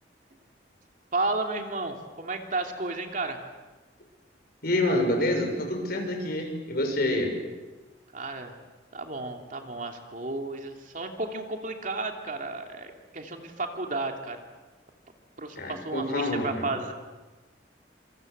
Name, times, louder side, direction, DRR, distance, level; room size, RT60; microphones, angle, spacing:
voice 1, 1.1-3.4 8.1-8.6 8.9-14.4 15.4-16.9, right 2 dB, 45° right, 4 dB, 2.9 m, -32 dB
voice 2, 4.6-7.3 15.5-16.7, left 1 dB, 55° left, 3 dB, 6.8 m, -27 dB
27.0 x 27.0 x 8.1 m, 1.2 s
head